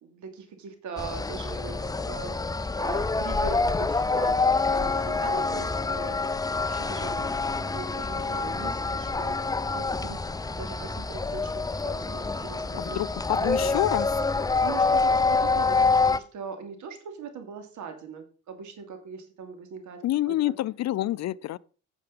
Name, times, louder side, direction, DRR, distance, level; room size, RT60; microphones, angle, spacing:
voice 1, 0.0-6.3 6.6-13.0 13.4-13.8 14.6-20.5, right 5 dB, 75° right, 2.8 m, -41 dB
sound 1, 1.0-16.2, left 3 dB, 10° left, 0.5 m, -26 dB
voice 2, 12.8-14.1 20.0-21.6, left 14 dB, 60° left, 0.5 m, -27 dB
9.1 x 7.0 x 5.3 m
cardioid pair, 90°, 30 cm